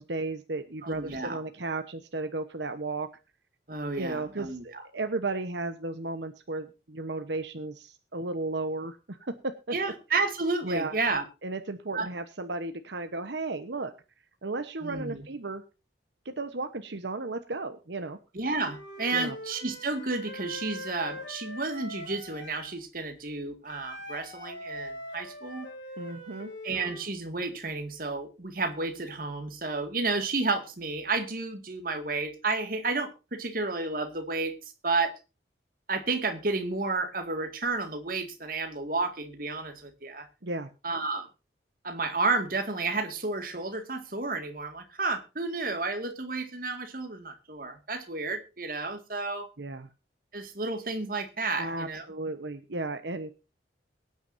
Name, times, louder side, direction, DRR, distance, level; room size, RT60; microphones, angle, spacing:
voice 1, 0.0-3.1 4.0-9.8 10.6-10.9 11.4-13.9 14.4-15.6 16.2-18.2 19.1-19.3 26.0-26.5 40.4-40.7 49.6-49.9 51.6-53.3, right 2 dB, 75° right, 8 dB, 1.0 m, -34 dB
voice 2, 0.8-1.4 3.7-4.8 9.7-11.2 11.9-12.1 14.8-15.3 18.3-25.7 26.6-34.6 34.8-35.1 35.9-40.3 40.8-41.3 41.8-49.5 50.3-52.1, right 3 dB, 50° right, 6 dB, 2.1 m, -31 dB
Wind instrument woodwind instrument, 18.6-22.7 23.7-27.0, left 1 dB, 80° left, 5.1 m, -42 dB
23.0 x 9.4 x 2.7 m, 0.31 s
head